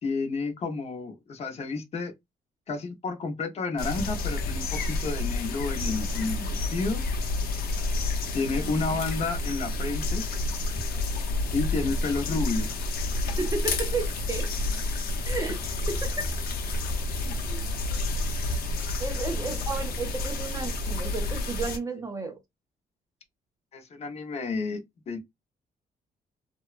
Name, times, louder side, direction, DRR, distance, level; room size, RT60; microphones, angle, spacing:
voice 1, 0.0-2.1 2.7-7.0 8.3-10.2 11.5-12.7 17.3-17.4 23.7-25.2, left 4 dB, 40° left, 0.7 m, -31 dB
sound 1, 3.8-21.8, left 2 dB, 75° left, 0.7 m, -29 dB
voice 2, 13.4-14.5 15.2-16.3 17.5-17.7 19.0-22.4, right 4 dB, 20° right, 0.4 m, -33 dB
2.9 x 2.1 x 2.4 m
cardioid pair, 155°, 16 cm